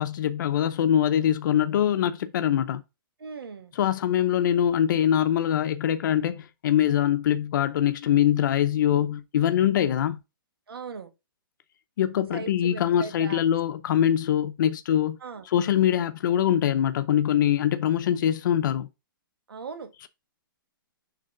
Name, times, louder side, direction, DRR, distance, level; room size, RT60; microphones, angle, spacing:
voice 1, 0.0-2.8 3.7-10.2 12.0-15.2 15.4-18.9, left 10 dB, 60° left, 0.6 m, -23 dB
voice 2, 3.2-3.7 10.7-11.1 12.3-13.4 15.2-15.4 19.5-19.9, right 5 dB, 90° right, 1.5 m, -38 dB
6.6 x 3.1 x 5.3 m
hypercardioid pair, 150°, 12 cm